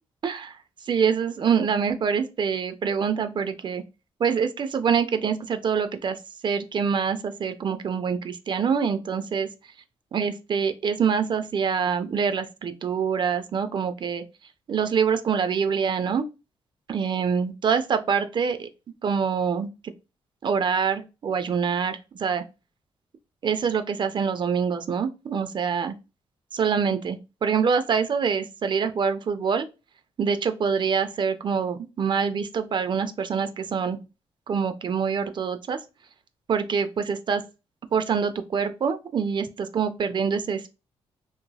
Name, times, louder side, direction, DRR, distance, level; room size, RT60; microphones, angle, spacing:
voice 1, 0.2-0.5 0.9-3.8 4.2-6.2 6.4-9.5 10.1-14.2 14.7-16.2 16.9-18.7 19.0-19.7 20.4-22.4 23.4-25.9 26.5-29.7 30.2-34.0 34.5-35.8 36.5-37.4 37.9-40.7, right 6 dB, 45° right, 0.4 m, -25 dB
2.9 x 2.7 x 2.2 m
cardioid pair, 80°, 11 cm